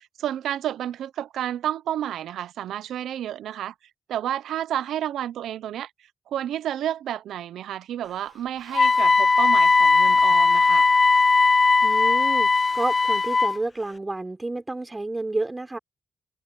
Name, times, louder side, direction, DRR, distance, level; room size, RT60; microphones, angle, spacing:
voice 1, 0.0-3.7 4.1-5.9 6.3-10.9, right 11 dB, 90° right, 0.8 m, -30 dB
Wind instrument woodwind instrument, 8.7-13.6, left 4 dB, 40° left, 0.5 m, -18 dB
voice 2, 11.8-15.8, right 2 dB, 25° right, 4.3 m, -30 dB
cardioid pair, 60°, 0 cm